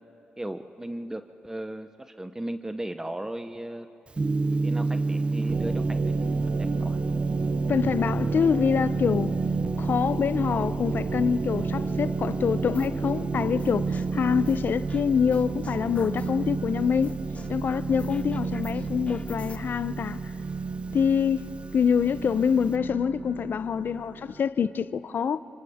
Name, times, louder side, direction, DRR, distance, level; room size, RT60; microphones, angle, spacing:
voice 1, 0.4-3.9 4.6-6.1 6.5-7.0, right 1 dB, 15° right, 0.8 m, -36 dB
Gong, 4.1-22.7, right 3 dB, 30° right, 0.4 m, -31 dB
sound 1, 5.5-24.4, right 4 dB, 55° right, 0.8 m, -33 dB
voice 2, 7.7-9.4 9.8-17.2 17.5-20.2 20.9-25.4, left 7 dB, 65° left, 0.6 m, -25 dB
sound 2, 12.7-13.1 13.6-15.0 15.3-16.5 17.0-19.6, left 3 dB, 35° left, 0.9 m, -44 dB
29.0 x 25.0 x 3.6 m
cardioid pair, 60°, 4 cm